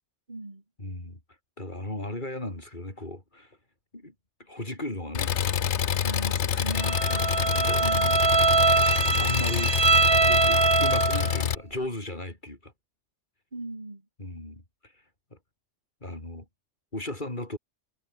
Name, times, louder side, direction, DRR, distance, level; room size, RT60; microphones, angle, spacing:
voice 1, 0.3-0.6 6.0-8.7 13.5-14.1, right 2 dB, 40° right, 3.4 m, -39 dB
voice 2, 0.8-1.2 1.6-3.5 3.9-4.1 4.5-5.3 7.7-7.9 9.2-9.7 10.2-12.7 14.2-14.9 16.0-16.5 16.9-17.6, left 1 dB, 40° left, 5.1 m, -36 dB
Engine, 5.1-11.5, left 8 dB, 75° left, 1.2 m, -27 dB
Bowed string instrument, 6.7-11.4, right 4 dB, 25° right, 0.9 m, -23 dB
omnidirectional pair, 1.2 m